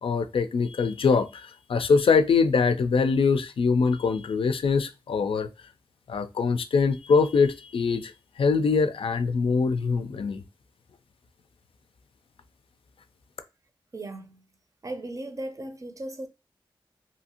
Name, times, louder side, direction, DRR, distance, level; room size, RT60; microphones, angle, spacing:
voice 1, 0.0-5.5 6.1-10.4, left 5 dB, 80° left, 0.4 m, -23 dB
voice 2, 13.9-14.5 14.8-16.3, right 1 dB, 40° right, 0.6 m, -36 dB
2.7 x 2.5 x 2.8 m
cardioid pair, 50°, 9 cm